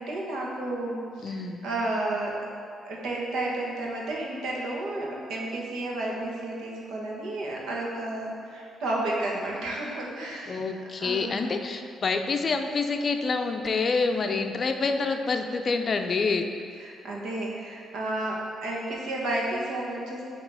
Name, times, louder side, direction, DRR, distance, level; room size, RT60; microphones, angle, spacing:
voice 1, 0.0-2.3 2.8-10.6 11.0-11.5 14.3-14.4 16.8-20.2, right 2 dB, 75° right, -3 dB, 1.3 m, -32 dB
voice 2, 1.2-1.6 10.5-16.5, left 4 dB, 45° left, 6 dB, 0.5 m, -27 dB
8.5 x 3.0 x 4.8 m, 2.3 s
cardioid pair, 90°, 0 cm